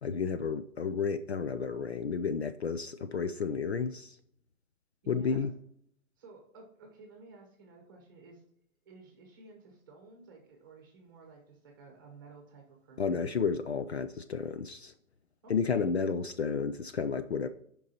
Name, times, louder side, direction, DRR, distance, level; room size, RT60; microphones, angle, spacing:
voice 1, 0.0-4.2 5.1-5.5 13.0-14.9 15.5-17.5, left 5 dB, 50° left, 10 dB, 0.5 m, -32 dB
voice 2, 5.0-5.5 6.2-8.4 8.8-13.3 15.4-15.9, right 4 dB, 15° right, 1 dB, 1.1 m, -53 dB
8.4 x 5.4 x 4.2 m, 0.69 s
hypercardioid pair, 180°, 42 cm